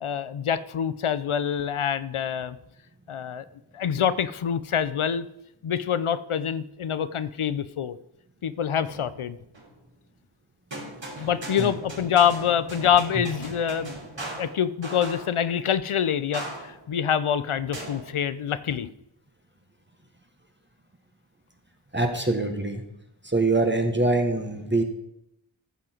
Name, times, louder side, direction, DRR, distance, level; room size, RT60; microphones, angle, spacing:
voice 1, 0.0-2.6 3.1-3.5 3.7-5.3 5.6-8.0 8.4-9.4 11.2-18.9, left 8 dB, 90° left, 14 dB, 0.6 m, -26 dB
sound 1, 8.9-9.8 10.7-15.5 16.3-17.0 17.7-18.6, right 2 dB, 65° right, 3.4 m, -39 dB
voice 2, 21.9-22.8 23.2-24.8, right 2 dB, 25° right, 4 dB, 1.3 m, -24 dB
14.5 x 6.2 x 4.5 m, 0.82 s
wide cardioid pair, 50°, 48 cm